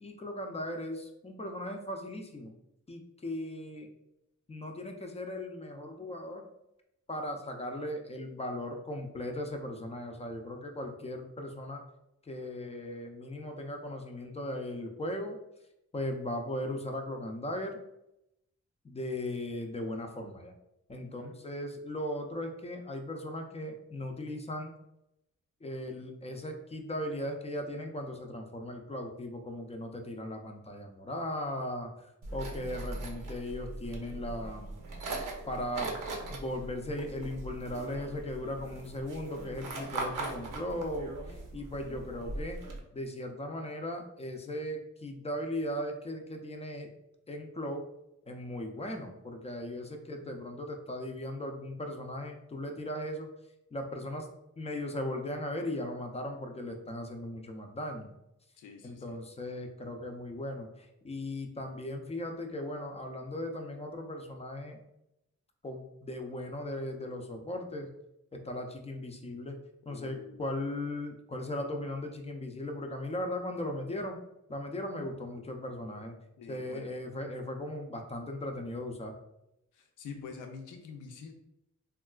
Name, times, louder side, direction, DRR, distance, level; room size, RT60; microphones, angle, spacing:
voice 1, 0.0-2.5 2.9-3.9 4.5-6.5 7.1-11.8 12.3-15.4 15.9-17.8 18.8-20.5 20.9-24.7 25.6-31.9 32.3-34.8 35.5-35.9 36.3-42.6 42.9-46.9 47.3-47.8 48.3-53.3 53.7-54.3 54.6-58.1 58.8-64.8 65.6-67.9 68.3-69.6 69.9-74.2 74.5-76.2 76.5-79.2, left 1 dB, 20° left, 3 dB, 0.3 m, -38 dB
voice 2, 21.0-21.4 49.9-50.4 58.6-59.2 69.9-70.6 76.4-76.9 79.7-81.3, left 5 dB, 80° left, 4 dB, 0.5 m, -47 dB
sound 1, 32.2-42.8, right 2 dB, 85° right, 0.6 m, -40 dB
3.5 x 2.3 x 2.3 m, 0.86 s
wide cardioid pair, 115°, 30 cm